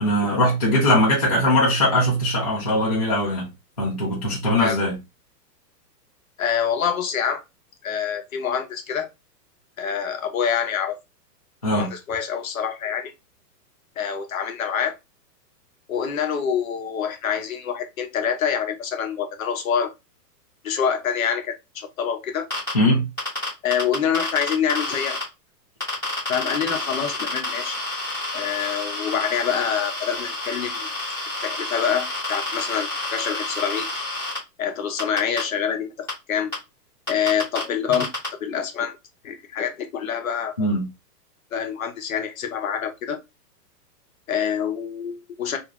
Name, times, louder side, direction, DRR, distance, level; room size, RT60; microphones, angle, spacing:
voice 1, 0.0-3.5 3.8-4.9 11.6-11.9 22.7-23.1 40.6-40.9, left 1 dB, 25° left, 0.4 m, -20 dB
voice 2, 6.4-7.4 7.8-9.1 9.8-11.0 11.7-13.1 14.0-15.0 15.9-19.9 20.6-22.5 23.6-25.2 26.3-27.8 28.3-30.9 31.4-33.9 34.6-36.5 37.1-38.1 38.4-39.0 39.2-40.7 41.5-43.2 44.3-45.6, left 8 dB, 55° left, 0.7 m, -26 dB
sound 1, 22.5-22.7 23.2-25.2 25.8-34.4 35.0-35.4 36.1-36.2 36.5-36.6 37.1-37.6 37.9-38.3, left 2 dB, 5° left, 0.8 m, -29 dB
2.5 x 2.4 x 2.9 m
hypercardioid pair, 170°, 49 cm